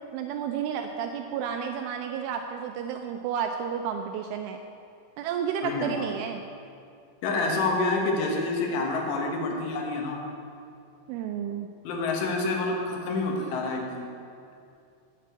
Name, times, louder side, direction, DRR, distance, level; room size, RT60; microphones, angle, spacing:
voice 1, 0.1-4.6 5.2-6.4 11.1-11.7, right 7 dB, 85° right, 5 dB, 2.8 m, -31 dB
voice 2, 5.6-6.1 7.2-10.2 11.9-14.1, left 3 dB, 75° left, 1 dB, 3.6 m, -28 dB
9.5 x 8.4 x 8.6 m, 2.5 s
omnidirectional pair, 6.0 m